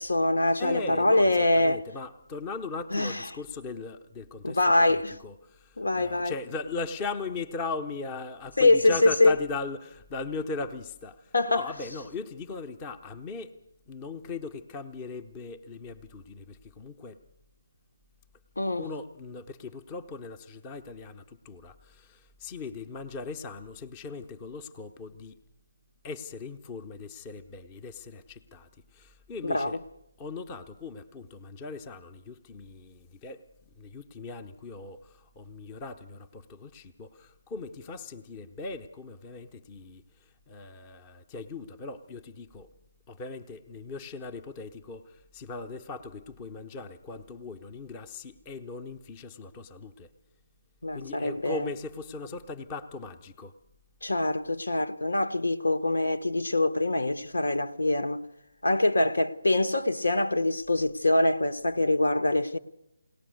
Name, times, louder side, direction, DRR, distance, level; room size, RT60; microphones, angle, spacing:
voice 1, 0.0-1.8 2.9-3.2 4.4-5.1 5.8-6.3 8.6-9.3 11.3-11.7 18.6-18.9 29.4-29.8 50.8-51.7 54.0-58.2 58.6-62.6, left 2 dB, 70° left, 1.4 m, -24 dB
voice 2, 0.6-13.6 13.9-17.2 18.8-25.4 26.0-29.8 30.2-33.5 33.8-42.7 43.1-50.1 50.9-53.5, left 3 dB, 20° left, 1.0 m, -39 dB
21.5 x 19.0 x 6.5 m
figure-of-eight pair, 150°, 0 cm